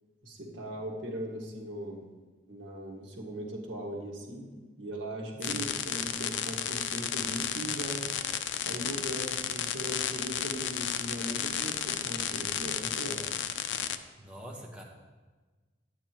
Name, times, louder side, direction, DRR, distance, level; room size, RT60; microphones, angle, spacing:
voice 1, 0.2-2.0 2.5-4.5 4.8-8.1 8.7-13.2, right 1 dB, 75° right, -1 dB, 1.8 m, -39 dB
sound 1, 5.4-14.0, left 9 dB, 75° left, 0.5 m, -33 dB
voice 2, 14.2-14.8, equal, 5° right, -3 dB, 1.2 m, -44 dB
11.5 x 8.8 x 3.0 m, 1.3 s
head